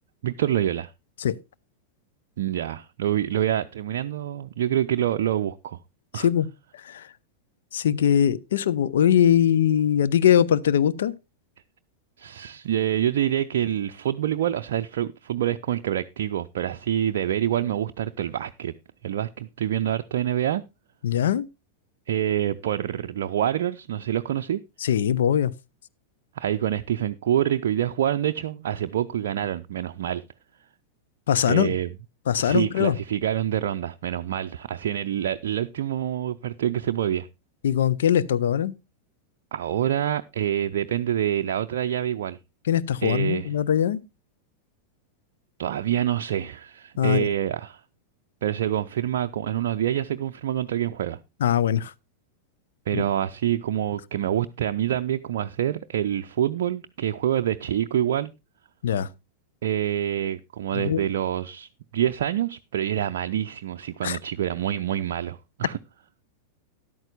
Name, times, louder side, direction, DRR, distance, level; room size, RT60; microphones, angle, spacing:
voice 1, 0.2-0.9 2.4-5.8 6.1-6.3 12.2-18.7 19.0-20.6 22.1-24.6 26.4-30.2 31.4-31.9 32.4-37.3 39.5-42.4 43.0-43.5 45.6-47.8 48.4-51.2 52.9-58.3 59.6-65.8, right 11 dB, 60° right, 0.4 m, -26 dB
voice 2, 6.1-7.1 7.7-11.1 21.0-21.5 24.8-25.5 31.3-31.8 32.3-33.0 37.6-38.7 42.6-44.0 47.0-47.3 51.4-51.9 52.9-53.0 58.8-59.1 60.7-61.0 64.0-64.2, left 9 dB, 60° left, 0.5 m, -22 dB
13.0 x 11.0 x 2.4 m
figure-of-eight pair, 90°, 0 cm